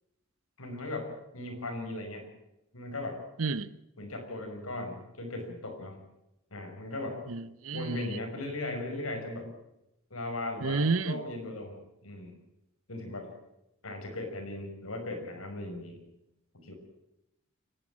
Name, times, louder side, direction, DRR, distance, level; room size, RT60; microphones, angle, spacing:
voice 1, 0.6-1.1 1.3-2.2 2.7-3.2 4.0-6.0 6.5-7.2 7.7-9.5 10.1-12.4 12.9-13.3 13.8-16.0 16.5-16.7, left 2 dB, 85° left, 5.9 m, -37 dB
voice 2, 3.4-3.7 7.3-8.0 10.6-11.2, right 4 dB, 80° right, 0.9 m, -30 dB
29.5 x 11.5 x 8.7 m
head